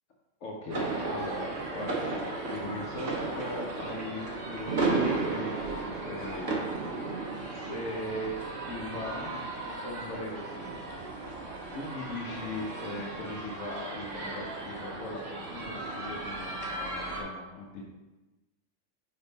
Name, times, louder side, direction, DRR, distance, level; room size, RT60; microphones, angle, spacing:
voice 1, 0.4-3.1 3.4-6.7 7.5-8.3 8.7-9.4 9.8-10.8 11.7-17.8, left 1 dB, 85° left, -2 dB, 1.3 m, -39 dB
sound 1, 0.7-17.2, right 3 dB, 80° right, 1.5 m, -35 dB
5.4 x 5.4 x 4.0 m, 1.1 s
omnidirectional pair, 1.3 m